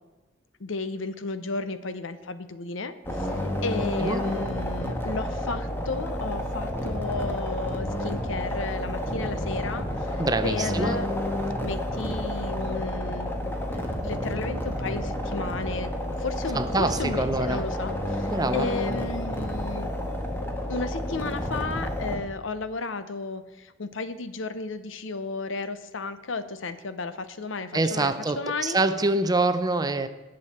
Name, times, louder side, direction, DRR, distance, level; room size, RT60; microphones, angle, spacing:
voice 1, 0.6-11.1 11.6-15.9 16.2-19.9 20.7-28.8, left 3 dB, 75° left, 0.8 m, -33 dB
sound 1, 3.0-22.2, left 1 dB, 10° left, 1.4 m, -30 dB
voice 2, 3.8-4.2 10.2-11.0 16.5-17.6 18.3-18.7 27.7-30.1, right 2 dB, 20° right, 0.5 m, -25 dB
17.5 x 6.4 x 4.3 m
head